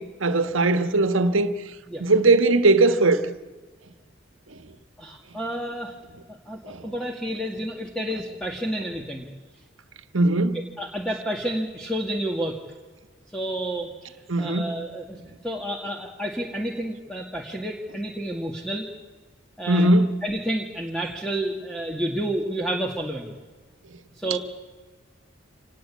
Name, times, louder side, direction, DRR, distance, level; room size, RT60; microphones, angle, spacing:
voice 1, 0.0-1.5 2.0-3.2 6.7-6.8 10.1-10.6 14.3-14.7 19.7-20.1, right 2 dB, 85° right, 1.4 m, -19 dB
voice 2, 5.0-5.9 6.5-9.3 10.8-12.6 13.3-15.2 15.4-18.9 19.6-19.9 20.2-23.3 24.2-24.4, right 1 dB, 5° left, 2.1 m, -30 dB
26.0 x 19.0 x 8.4 m
head